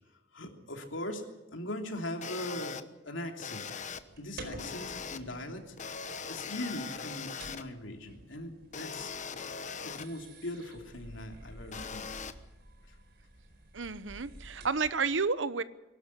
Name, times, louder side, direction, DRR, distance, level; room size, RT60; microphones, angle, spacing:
voice 1, 0.3-1.2 1.5-3.6 4.2-5.7 6.3-9.1 9.8-12.1, left 1 dB, 85° left, 3 dB, 3.1 m, -40 dB
sound 1, 2.2-2.8 3.4-4.0 4.6-5.2 5.8-7.6 8.7-10.1 11.7-12.3, left 6 dB, 40° left, 1.0 m, -40 dB
sound 2, 3.7-15.1, right 1 dB, 60° right, 4.5 m, -51 dB
voice 2, 13.7-15.6, right 4 dB, 75° right, 15 dB, 0.9 m, -31 dB
23.5 x 12.5 x 9.8 m, 1.1 s
head